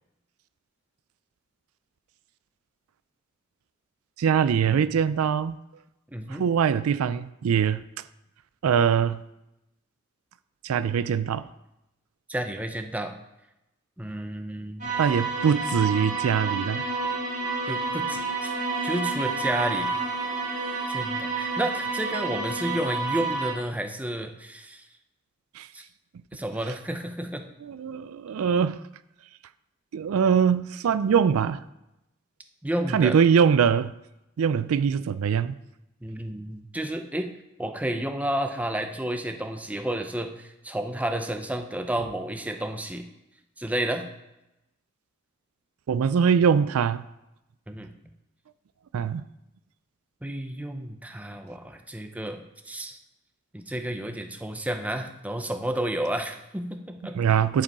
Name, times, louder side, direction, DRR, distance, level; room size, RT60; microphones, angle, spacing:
voice 1, 4.2-5.6 6.3-7.8 8.6-9.2 10.6-11.5 15.0-16.8 25.6-25.7 27.6-28.8 29.9-31.6 32.9-33.9 34.4-35.6 45.9-47.0 48.9-49.3 57.1-57.6, right 7 dB, 90° right, 0.4 m, -22 dB
voice 2, 6.1-6.5 12.3-13.2 14.0-14.9 17.6-18.5 18.8-20.0 20.9-24.9 25.7-25.8 26.3-27.5 32.6-33.2 36.0-37.3 37.6-43.1 43.6-44.1 47.7-47.9 50.2-53.0 53.5-57.4, right 1 dB, 5° right, 0.6 m, -31 dB
sound 1, 14.8-23.5, right 4 dB, 35° right, 1.7 m, -29 dB
10.0 x 5.0 x 4.7 m
head